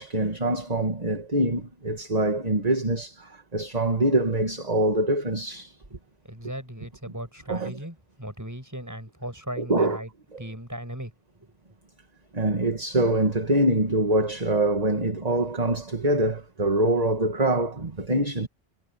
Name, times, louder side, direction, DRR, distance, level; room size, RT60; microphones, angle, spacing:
voice 1, 0.0-5.7 7.5-7.8 9.6-10.0 10.3-10.4 12.3-18.5, right 1 dB, 40° right, 2.1 m, -24 dB
voice 2, 6.2-10.1 10.4-11.1, equal, 15° right, 6.3 m, -37 dB
omnidirectional pair, 1.1 m